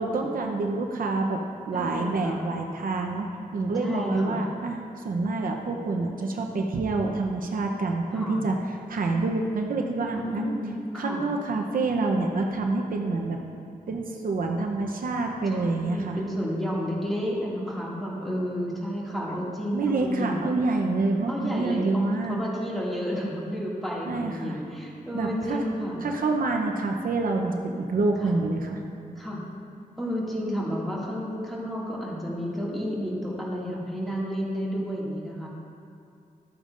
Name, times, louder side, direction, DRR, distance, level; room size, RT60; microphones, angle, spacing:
voice 1, 0.0-1.4 1.7-3.3 3.5-4.8 5.0-8.6 8.9-10.6 10.9-13.4 13.9-16.2 19.7-22.4 24.1-24.6 25.1-25.6 26.0-28.8, right 3 dB, 70° right, 2 dB, 0.8 m, -27 dB
voice 2, 1.7-2.5 3.8-4.4 8.1-8.4 10.2-11.2 15.5-20.4 21.3-26.0 28.2-28.4 29.2-29.4 30.0-35.5, equal, ahead, -6 dB, 2.2 m, -31 dB
13.0 x 9.0 x 2.6 m, 2.5 s
wide cardioid pair, 105°, 15 cm